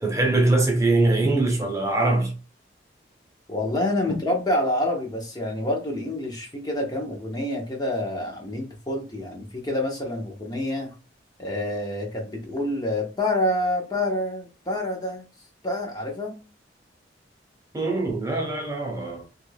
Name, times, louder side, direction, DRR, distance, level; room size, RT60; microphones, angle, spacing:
voice 1, 0.0-2.3 4.1-4.2 17.7-19.3, right 2 dB, 15° right, 0.7 m, -22 dB
voice 2, 3.5-10.9 11.4-15.2 15.6-16.4, left 1 dB, 20° left, 0.7 m, -27 dB
3.1 x 2.3 x 3.2 m
head